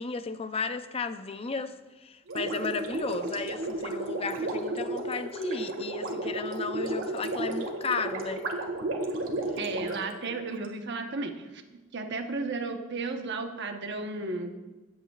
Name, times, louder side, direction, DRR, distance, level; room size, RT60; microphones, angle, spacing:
voice 1, 0.0-8.5, left 4 dB, 30° left, 0.5 m, -34 dB
Gurgling, 2.3-10.7, right 2 dB, 80° right, 1.7 m, -33 dB
voice 2, 9.6-11.6 11.9-14.6, right 3 dB, 60° right, 1.0 m, -34 dB
17.0 x 8.7 x 2.4 m
head